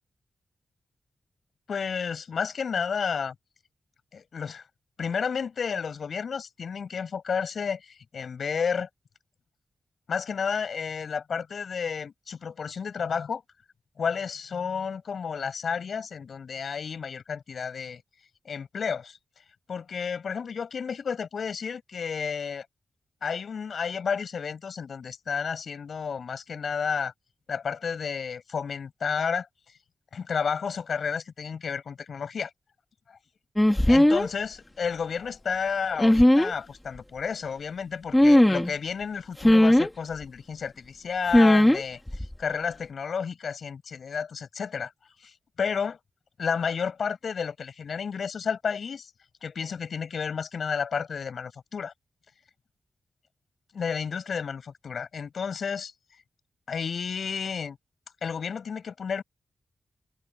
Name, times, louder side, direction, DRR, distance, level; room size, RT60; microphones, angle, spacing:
voice 1, 1.7-3.3 4.1-4.6 5.0-8.9 10.1-13.4 14.0-18.0 18.4-19.2 19.7-22.6 23.2-27.1 27.5-29.5 30.1-32.5 33.1-33.2 33.8-42.0 42.4-44.9 45.2-45.3 45.6-46.0 46.4-49.1 49.4-51.9 53.7-55.9 56.7-57.8 58.2-59.2, left 6 dB, 70° left, 7.8 m, -31 dB
sound 1, 33.6-34.3 36.0-36.5 38.1-38.7 39.4-39.9 41.3-41.8 42.1-42.3, left 1 dB, 10° left, 3.2 m, -18 dB
wide cardioid pair, 95°, 0 cm